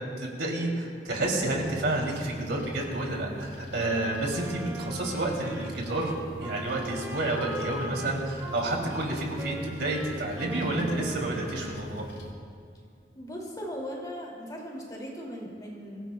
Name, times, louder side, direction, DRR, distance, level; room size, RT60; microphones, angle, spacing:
voice 1, 0.2-6.1 6.4-12.0, right 2 dB, 70° right, -1 dB, 2.9 m, -30 dB
sound 1, 1.5-12.3, right 1 dB, 80° left, 3.1 m, -44 dB
Wind instrument woodwind instrument, 3.8-12.2, right 1 dB, 15° right, 2.5 m, -41 dB
voice 2, 13.1-16.0, equal, 20° left, -2 dB, 2.5 m, -38 dB
24.0 x 15.5 x 2.3 m, 2.2 s
head